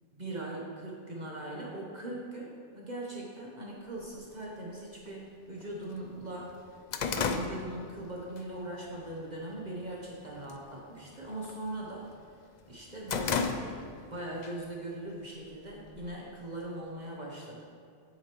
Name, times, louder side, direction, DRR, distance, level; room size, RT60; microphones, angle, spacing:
voice 1, 0.1-6.6 7.1-12.1 12.7-17.6, right 1 dB, 45° right, -3 dB, 1.1 m, -40 dB
sound 1, 4.1-4.2 5.1-5.2 5.6-5.7 6.0-8.5 8.8-9.2 9.6-10.1 10.4-10.7 11.0-12.2 12.6-14.1 14.4-14.6 15.4-16.3, left 5 dB, 55° left, 0.6 m, -34 dB
9.9 x 8.1 x 3.1 m, 2.3 s
omnidirectional pair, 1.0 m